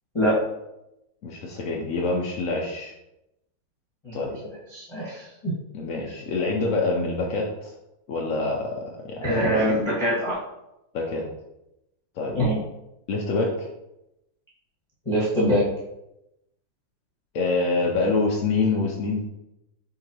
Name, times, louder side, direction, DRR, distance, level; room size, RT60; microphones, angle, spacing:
voice 1, 1.2-2.9 4.1-4.4 5.7-7.7 8.1-9.5 10.9-11.2 12.2-12.4 13.1-13.7 17.3-19.2, left 3 dB, 75° left, -1 dB, 0.7 m, -26 dB
voice 2, 4.7-5.5 9.2-10.4 12.3-12.6 15.0-15.6, equal, 15° left, -8 dB, 1.2 m, -23 dB
4.7 x 3.8 x 2.9 m, 0.89 s
omnidirectional pair, 2.1 m